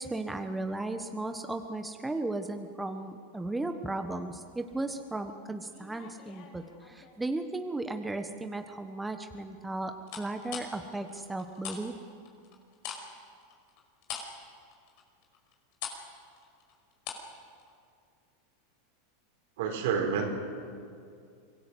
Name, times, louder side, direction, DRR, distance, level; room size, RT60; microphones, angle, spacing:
voice 1, 0.0-11.9, right 2 dB, 10° right, 6 dB, 1.3 m, -35 dB
sound 1, 5.7-7.4 7.9-8.3 10.1-11.8 12.1-17.3 17.6-17.7, left 7 dB, 60° left, 5.3 m, -43 dB
voice 2, 19.6-20.3, right 6 dB, 70° right, 4 dB, 4.4 m, -28 dB
25.0 x 18.5 x 8.1 m, 2.3 s
hypercardioid pair, 110°, 0 cm